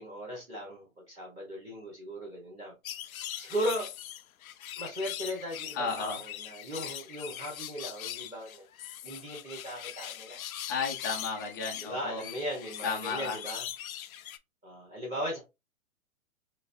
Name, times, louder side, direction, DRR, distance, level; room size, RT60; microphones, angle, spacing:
voice 1, 0.0-2.7 3.4-3.9 4.8-8.7 9.0-10.4 11.8-13.7 14.6-15.4, equal, 15° right, 0.8 m, -37 dB
sound 1, 2.8-14.4, left 11 dB, 75° left, 0.5 m, -41 dB
voice 2, 5.7-6.2 10.7-12.2 12.8-13.4, left 5 dB, 15° left, 0.3 m, -33 dB
4.0 x 2.5 x 2.5 m
hypercardioid pair, 130°, 42 cm